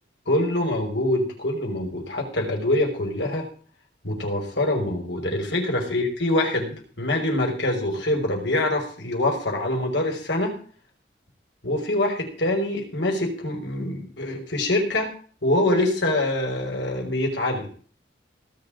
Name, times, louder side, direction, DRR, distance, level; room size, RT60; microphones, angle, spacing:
voice 1, 0.3-3.5 4.0-10.5 11.6-15.1 15.4-17.7, left 1 dB, 80° left, 2 dB, 5.9 m, -25 dB
18.5 x 6.8 x 8.9 m, 0.43 s
head